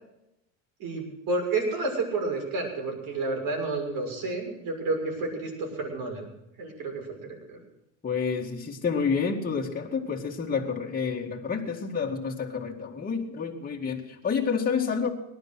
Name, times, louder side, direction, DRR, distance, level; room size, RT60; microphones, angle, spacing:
voice 1, 0.8-6.3 6.6-7.6, right 3 dB, 55° right, 2 dB, 6.8 m, -30 dB
voice 2, 8.0-15.1, left 5 dB, 20° left, -1 dB, 2.2 m, -29 dB
19.0 x 11.5 x 6.4 m, 0.87 s
supercardioid pair, 95°, 40 cm